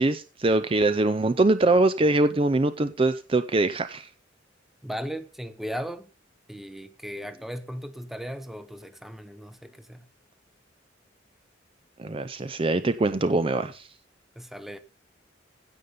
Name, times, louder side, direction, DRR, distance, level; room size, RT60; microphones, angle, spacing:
voice 1, 0.0-4.1 12.0-13.9, right 2 dB, 30° right, 0.5 m, -23 dB
voice 2, 4.8-6.1 6.5-10.1 14.4-14.8, equal, ahead, 0.8 m, -37 dB
16.0 x 5.5 x 5.2 m
head